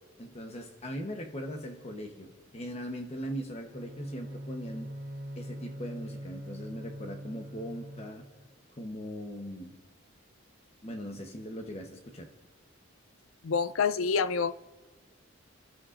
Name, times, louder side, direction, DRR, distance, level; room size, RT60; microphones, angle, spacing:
voice 1, 0.2-4.9 5.4-8.2 8.8-9.8 10.8-12.3, equal, 30° left, 1.0 m, -40 dB
Bowed string instrument, 3.6-8.5, equal, 70° right, 2.7 m, -43 dB
voice 2, 13.4-14.5, left 5 dB, 90° left, 0.5 m, -27 dB
29.5 x 12.5 x 2.5 m
head